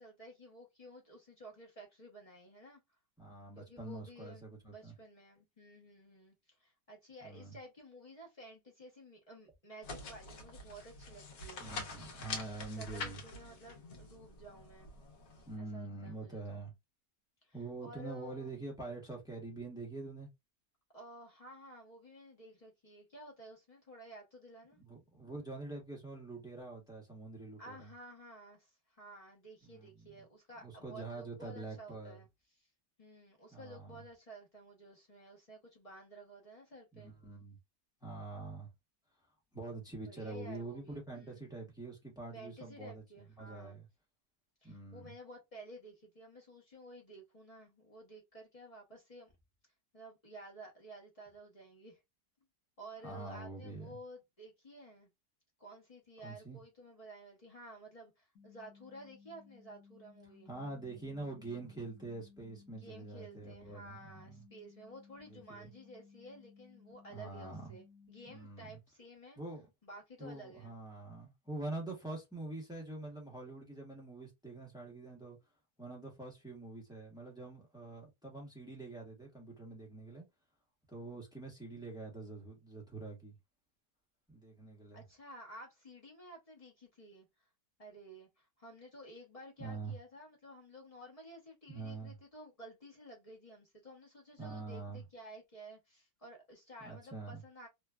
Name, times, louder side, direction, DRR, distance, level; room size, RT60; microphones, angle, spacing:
voice 1, 0.0-2.8 3.5-12.0 12.6-14.9 15.6-16.6 17.4-18.5 20.9-24.8 27.6-32.7 33.0-37.1 40.0-41.5 42.3-43.8 44.6-49.3 49.9-52.0 52.8-55.1 55.6-60.5 62.8-69.4 69.8-70.7 84.9-87.3 87.8-97.7, right 1 dB, 35° left, 0.6 m, -53 dB
voice 2, 3.2-4.9 7.2-7.6 11.6-13.2 15.5-16.7 17.5-20.3 24.8-27.9 29.7-30.1 30.6-32.2 33.5-34.0 36.9-37.6 38.0-38.7 39.5-43.0 43.4-43.9 44.6-45.1 53.0-53.9 56.2-56.6 60.5-64.1 65.3-65.7 67.1-67.7 68.3-68.8 69.4-69.7 70.2-75.4 75.8-80.2 80.9-83.3 84.3-85.0 89.6-89.9 91.7-92.1 94.4-95.0 96.8-97.4, right 3 dB, 5° right, 0.7 m, -45 dB
sound 1, 9.8-15.6, left 3 dB, 65° left, 1.3 m, -46 dB
sound 2, 58.4-68.4, left 5 dB, 85° left, 1.4 m, -60 dB
3.1 x 2.2 x 2.2 m
omnidirectional pair, 1.8 m